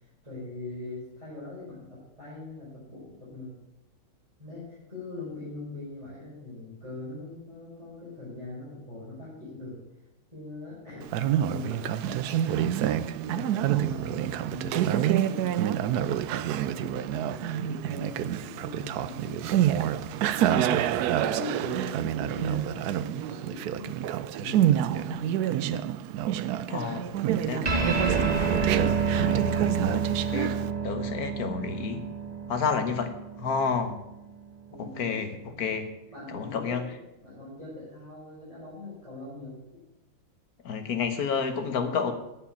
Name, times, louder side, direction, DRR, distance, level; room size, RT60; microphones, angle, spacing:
voice 1, 0.2-3.5 4.4-9.8 10.3-12.8 13.3-16.2 16.7-20.0 20.3-23.9 24.4-25.5 26.6-26.9 27.4-28.7 34.7-35.2 35.5-35.6 36.1-36.9 37.2-39.8, left 2 dB, 15° right, -10 dB, 5.4 m, -41 dB
Conversation, 11.0-30.7, right 11 dB, 80° right, 0.9 m, -27 dB
sound 1, 27.6-34.4, right 5 dB, 35° right, 0.6 m, -29 dB
voice 2, 29.8-30.6 30.8-32.0 32.5-33.1 33.4-33.9 34.8-35.3 35.6-35.9 36.3-36.8 40.6-42.1, left 5 dB, 50° left, 8 dB, 1.5 m, -29 dB
9.7 x 7.2 x 8.4 m, 0.92 s
omnidirectional pair, 2.2 m